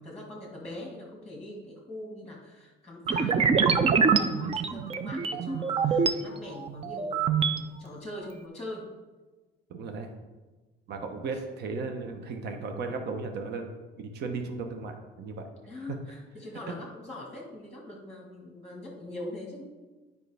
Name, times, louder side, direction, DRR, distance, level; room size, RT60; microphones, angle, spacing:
voice 1, 0.0-8.9 11.3-11.4 15.7-19.7, left 1 dB, 5° left, -1 dB, 1.4 m, -42 dB
sound 1, 3.1-6.1 6.6-7.6, right 5 dB, 30° right, 0.5 m, -25 dB
voice 2, 9.7-10.1 10.9-13.6 14.0-15.4 15.9-16.0, right 4 dB, 55° right, 5 dB, 0.9 m, -35 dB
9.0 x 5.3 x 3.4 m, 1.2 s
cardioid pair, 125°, 20 cm